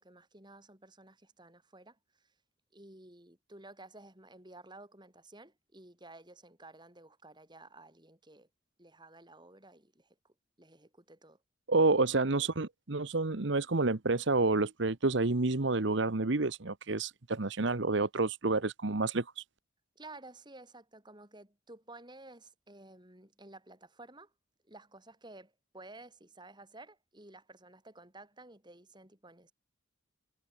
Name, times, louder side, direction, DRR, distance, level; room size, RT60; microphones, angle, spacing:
voice 1, 0.0-2.3 2.7-8.5 8.8-11.4 20.0-24.3 24.7-29.5, right 2 dB, 25° right, 7.5 m, -53 dB
voice 2, 11.7-19.4, right 3 dB, 65° right, 1.1 m, -29 dB
head